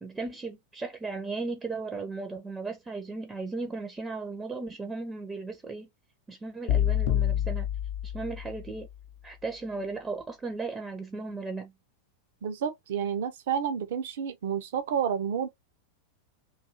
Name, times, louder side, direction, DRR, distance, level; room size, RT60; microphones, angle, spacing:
voice 1, 0.0-5.9 6.3-7.7 8.0-8.9 9.2-11.7, right 3 dB, 15° right, 0.5 m, -36 dB
sound 1, 6.7-8.8, left 11 dB, 50° left, 0.5 m, -27 dB
voice 2, 12.4-15.5, right 8 dB, 55° right, 0.5 m, -30 dB
2.6 x 2.3 x 2.8 m
figure-of-eight pair, 90°, 0 cm